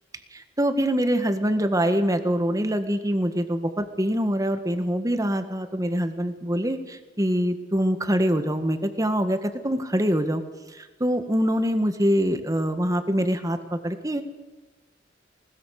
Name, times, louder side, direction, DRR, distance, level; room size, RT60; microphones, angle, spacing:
voice 1, 0.3-10.4 10.7-14.2, equal, 20° right, 8 dB, 1.7 m, -24 dB
20.5 x 20.0 x 6.6 m, 1.2 s
head